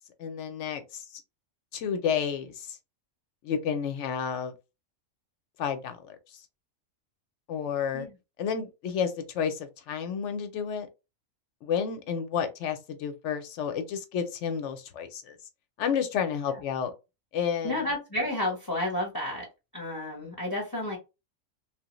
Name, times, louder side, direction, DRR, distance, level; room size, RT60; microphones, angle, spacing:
voice 1, 0.2-1.2 1.7-2.8 3.4-4.5 5.6-6.4 7.5-8.1 8.4-10.9 11.6-15.4 15.8-16.9 17.3-17.8, left 7 dB, 70° left, 0.9 m, -31 dB
voice 2, 17.6-19.5 19.7-21.0, left 1 dB, 20° left, 0.6 m, -31 dB
3.1 x 2.0 x 2.9 m
omnidirectional pair, 1.4 m